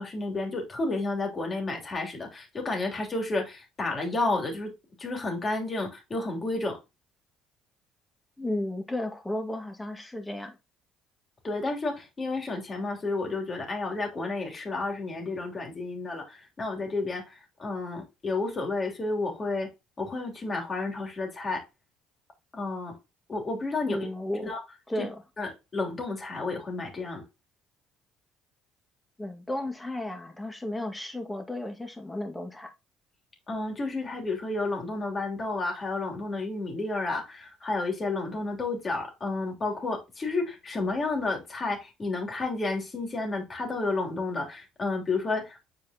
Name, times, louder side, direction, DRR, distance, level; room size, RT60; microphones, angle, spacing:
voice 1, 0.0-4.7 5.0-6.8 11.4-19.7 20.0-21.6 22.5-22.9 23.3-24.0 24.4-24.6 25.0-25.1 25.4-27.2 33.5-45.6, left 3 dB, 35° left, 3.1 m, -31 dB
voice 2, 8.4-10.6 23.8-24.5 24.9-25.2 29.2-32.7, left 1 dB, 10° left, 1.9 m, -33 dB
8.0 x 4.6 x 2.9 m
hypercardioid pair, 65°, 0 cm